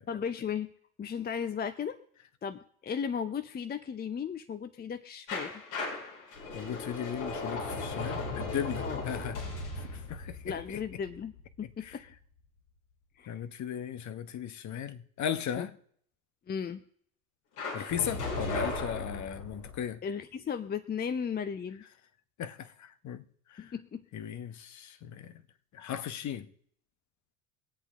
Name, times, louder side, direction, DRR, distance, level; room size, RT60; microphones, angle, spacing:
voice 1, 0.1-0.7 1.0-2.0 2.4-5.5 8.8-9.0 10.4-12.0 13.2-13.4 15.6-15.7 16.5-16.8 20.0-21.8 23.6-24.1, left 7 dB, 20° left, 0.7 m, -35 dB
sound 1, 5.3-12.1 17.6-19.8, left 2 dB, 70° left, 5.3 m, -37 dB
voice 2, 6.5-9.4 9.9-10.4 10.7-10.8 11.8-12.0 13.3-15.7 17.7-20.0 22.4-23.2 23.6-23.7 24.1-25.3 25.7-26.5, left 9 dB, 40° left, 1.1 m, -36 dB
24.0 x 8.2 x 3.7 m
hypercardioid pair, 80°, 44 cm